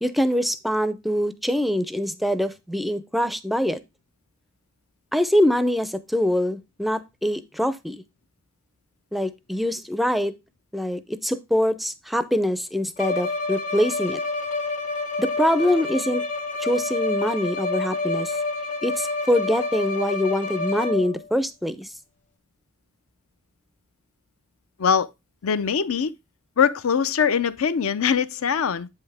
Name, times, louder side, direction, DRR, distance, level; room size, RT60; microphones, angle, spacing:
voice 1, 0.0-3.8 5.1-8.0 9.1-10.3 10.7-14.2 15.2-16.2 16.6-18.3 18.8-21.9, equal, ahead, 0.4 m, -24 dB
Bowed string instrument, 13.0-21.2, left 3 dB, 35° left, 0.9 m, -28 dB
voice 2, 24.8-25.1 25.4-26.1 26.6-28.9, left 7 dB, 70° left, 0.5 m, -22 dB
7.8 x 5.6 x 3.3 m
head